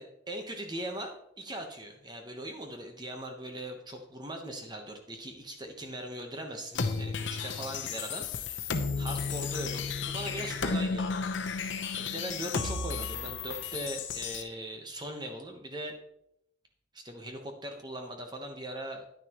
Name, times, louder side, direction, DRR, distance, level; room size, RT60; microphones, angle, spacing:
voice 1, 0.0-11.3 12.0-16.0 16.9-19.0, right 1 dB, 20° right, 4 dB, 1.0 m, -40 dB
sound 1, 6.7-14.4, left 4 dB, 70° left, 0.8 m, -33 dB
10.0 x 9.8 x 3.0 m, 0.76 s
head